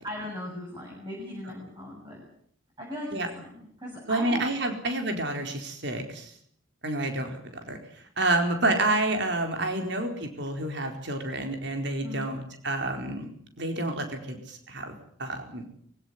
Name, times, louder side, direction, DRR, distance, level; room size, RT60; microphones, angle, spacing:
voice 1, 0.0-2.2 2.8-4.7 9.7-9.8 12.0-12.3, left 1 dB, 20° right, -3 dB, 7.1 m, -38 dB
voice 2, 4.1-6.3 6.8-7.4 7.6-7.8 8.2-12.4 12.6-13.3 13.6-15.6, right 2 dB, 55° right, 5 dB, 4.4 m, -29 dB
24.0 x 16.5 x 9.7 m, 0.65 s
head